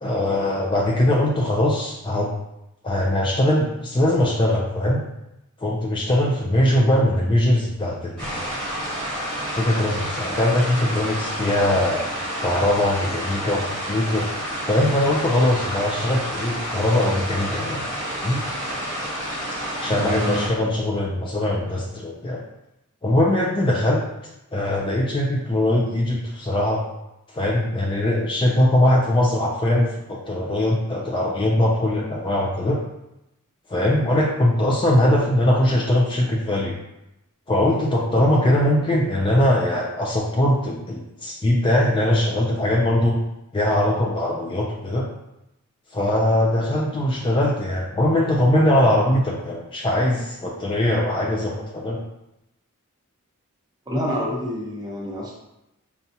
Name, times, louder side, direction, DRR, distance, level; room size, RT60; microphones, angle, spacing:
voice 1, 0.0-2.3 2.8-5.0 5.6-8.4 9.5-12.1 12.4-14.3 14.7-17.9 18.2-18.4 19.8-22.4 23.0-24.0 24.5-26.8 27.3-32.8 33.7-36.8 37.5-43.2 43.5-45.1 45.9-52.0, left 1 dB, 20° left, -2 dB, 0.4 m, -21 dB
sound 1, 8.2-20.5, equal, 5° left, 1.4 m, -29 dB
voice 2, 19.8-20.7 53.9-55.3, equal, 20° right, -4 dB, 0.8 m, -28 dB
5.3 x 2.3 x 2.7 m, 0.89 s
head